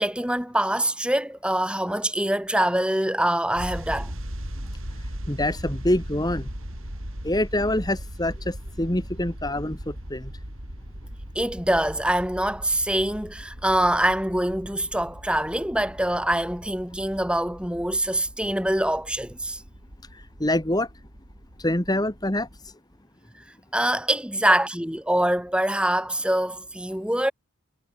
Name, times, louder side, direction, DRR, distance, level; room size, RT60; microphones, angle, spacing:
voice 1, 0.0-4.2 11.3-19.6 23.7-27.3, right 1 dB, 5° right, 2.5 m, -24 dB
sound 1, 3.5-22.7, equal, 65° right, 7.2 m, -39 dB
voice 2, 5.3-6.5 7.2-10.3 20.1-20.9 21.6-22.5, left 1 dB, 20° left, 1.7 m, -25 dB
head